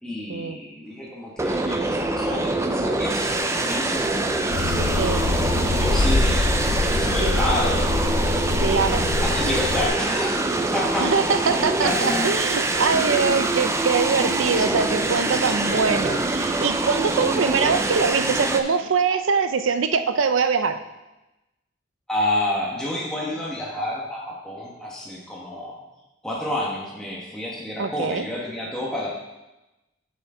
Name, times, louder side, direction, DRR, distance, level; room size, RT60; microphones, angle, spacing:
voice 1, 0.0-4.1 4.4-5.3 5.6-6.5 6.8-7.8 9.2-12.2 15.4-15.6 22.1-25.8 26.2-29.1, left 1 dB, 5° left, -5 dB, 1.1 m, -29 dB
sound 1, 1.4-18.6, right 2 dB, 15° right, 0.4 m, -24 dB
Subway metro underground, 2.2-18.1, equal, 45° right, 1.8 m, -38 dB
sound 2, 4.5-9.9, left 2 dB, 65° left, 0.5 m, -24 dB
voice 2, 8.6-9.1 11.0-20.8 27.8-28.3, right 5 dB, 80° right, 9 dB, 0.5 m, -23 dB
7.8 x 6.3 x 3.7 m, 1.0 s
head